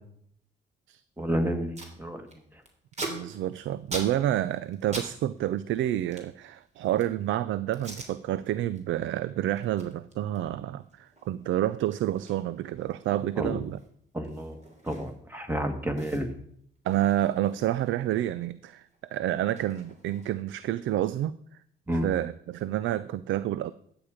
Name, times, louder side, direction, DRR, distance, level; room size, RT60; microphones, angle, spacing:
voice 1, 1.2-2.3 13.4-13.5 14.1-14.6 14.8-16.3 21.9-22.1, equal, 10° right, 7 dB, 1.9 m, -30 dB
Packing tape duct tape, 1.2-1.3 1.5-1.9 2.3-5.1 5.4-7.2 7.7-8.1 8.6-8.8 9.1-15.4 15.6-15.7 16.0-18.3 18.6-20.6, right 2 dB, 35° right, 3.2 m, -43 dB
voice 2, 3.0-13.8 16.8-21.4 21.9-23.7, right 13 dB, 75° right, 16 dB, 0.5 m, -29 dB
13.0 x 9.0 x 5.0 m, 0.67 s
cardioid pair, 90°, 20 cm